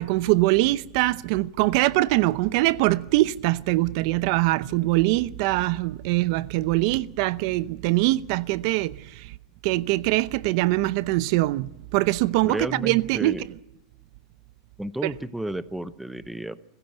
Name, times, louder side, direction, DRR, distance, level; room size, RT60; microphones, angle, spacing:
voice 1, 0.0-9.3 9.6-13.6 15.0-15.1, right 18 dB, 60° right, 0.7 m, -23 dB
voice 2, 12.4-13.4 14.8-16.6, right 1 dB, 5° right, 0.8 m, -32 dB
24.5 x 15.5 x 8.0 m
supercardioid pair, 140°, 3 cm